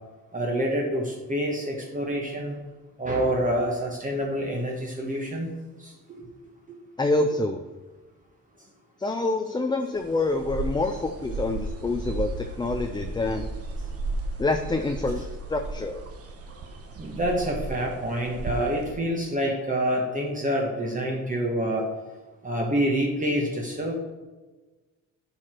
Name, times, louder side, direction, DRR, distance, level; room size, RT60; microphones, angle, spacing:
voice 1, 0.3-2.6 3.0-5.5 6.1-6.2 17.0-21.8 22.4-24.0, equal, 25° right, -1 dB, 1.3 m, -27 dB
voice 2, 7.0-7.6 9.0-13.5 14.4-16.0, left 2 dB, 15° left, 5 dB, 0.4 m, -27 dB
sound 1, 10.0-18.9, right 2 dB, 45° right, 1.2 m, -35 dB
10.0 x 4.9 x 4.5 m, 1.2 s
cardioid pair, 120°, 32 cm